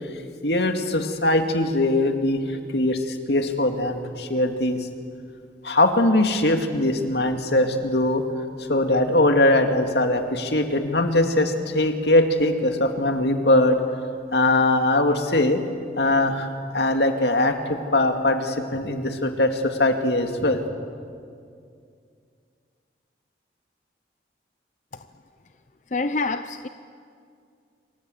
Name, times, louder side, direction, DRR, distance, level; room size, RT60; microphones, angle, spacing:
voice 1, 0.4-4.9 5.6-8.3 8.7-13.8 14.3-15.6 16.0-16.5 16.7-20.6, left 1 dB, 75° left, 5 dB, 2.4 m, -21 dB
voice 2, 25.9-26.7, left 3 dB, 45° left, 9 dB, 0.6 m, -26 dB
27.5 x 24.5 x 8.0 m, 2.3 s
head